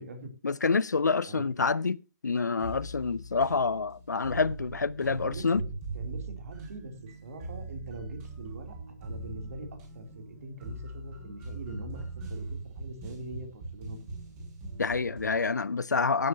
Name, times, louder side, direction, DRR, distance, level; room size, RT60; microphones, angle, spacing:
voice 1, 0.4-5.6 14.8-16.3, left 4 dB, 75° left, 0.5 m, -27 dB
sound 1, 2.6-15.4, right 2 dB, 25° right, 7.5 m, -41 dB
voice 2, 5.0-5.6 5.9-6.9 7.2-8.7 9.0-14.2, right 2 dB, 55° right, 3.0 m, -43 dB
16.0 x 10.5 x 2.8 m
figure-of-eight pair, 130°, 10 cm